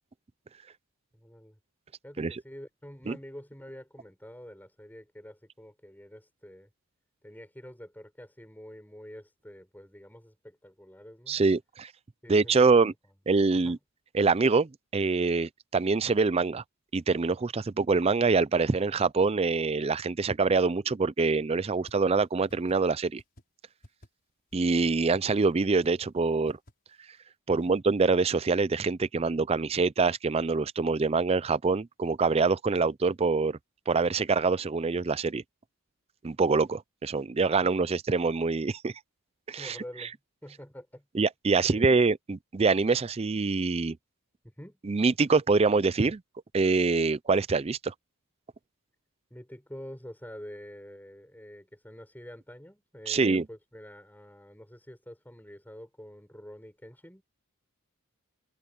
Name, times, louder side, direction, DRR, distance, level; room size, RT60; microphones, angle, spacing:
voice 1, 1.1-1.6 2.0-6.7 7.2-11.4 12.2-12.9 13.5-13.8 27.7-27.8 37.6-37.9 39.6-41.0 41.6-41.8 44.4-44.8 49.3-57.2, equal, 10° left, 6.8 m, -47 dB
voice 2, 11.3-11.9 12.3-12.9 13.3-13.8 14.1-16.6 16.9-23.2 24.5-26.6 27.5-33.6 33.9-35.4 36.2-38.9 39.5-39.8 41.1-44.0 44.8-46.2 46.5-47.9 53.1-53.4, right 4 dB, 25° right, 0.4 m, -25 dB
sound 1, 21.9-22.0 22.2-22.3 22.5-22.7 23.2-23.4 23.8-24.1 24.5-24.6 24.8-24.9 25.1-25.4 25.8-26.1 26.5-26.7, equal, 40° left, 6.3 m, -51 dB
head